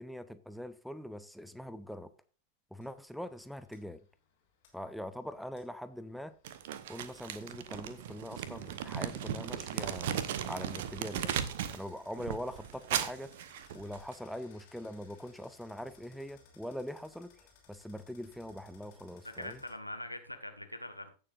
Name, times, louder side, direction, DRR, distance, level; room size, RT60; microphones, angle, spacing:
voice 1, 0.0-2.1 2.7-4.0 4.7-6.3 6.9-11.3 11.7-13.3 13.7-17.3 17.7-19.6, equal, ahead, 0.7 m, -42 dB
sound 1, 2.8-19.7, left 5 dB, 50° left, 3.5 m, -64 dB
Crumpling crinkling, 6.4-11.8 12.2-14.1, right 9 dB, 55° right, 0.9 m, -37 dB
voice 2, 19.2-21.1, left 1 dB, 90° left, 1.2 m, -42 dB
16.0 x 6.9 x 2.5 m
figure-of-eight pair, 90°, 0 cm